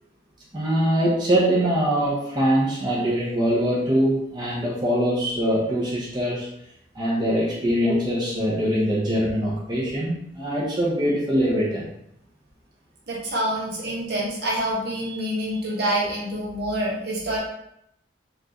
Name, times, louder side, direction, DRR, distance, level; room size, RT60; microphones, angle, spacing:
voice 1, 0.5-6.5 6.9-11.9, equal, 25° right, -7 dB, 0.7 m, -23 dB
voice 2, 13.1-17.4, right 1 dB, 55° right, -4 dB, 1.1 m, -26 dB
4.4 x 2.4 x 2.9 m, 0.76 s
head